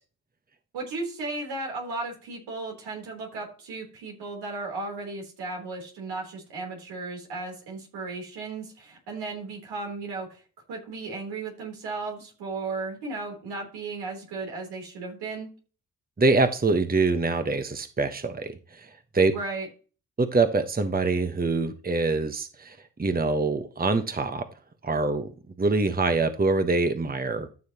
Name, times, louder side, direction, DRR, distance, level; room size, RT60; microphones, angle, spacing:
voice 1, 0.7-10.4 10.7-15.5 19.3-19.7, right 3 dB, 80° right, 1 dB, 3.7 m, -35 dB
voice 2, 16.2-19.3 20.2-24.4 24.8-25.3 25.6-27.5, right 3 dB, 20° right, 8 dB, 1.3 m, -25 dB
13.5 x 6.4 x 3.0 m, 0.36 s
hypercardioid pair, 50°, 39 cm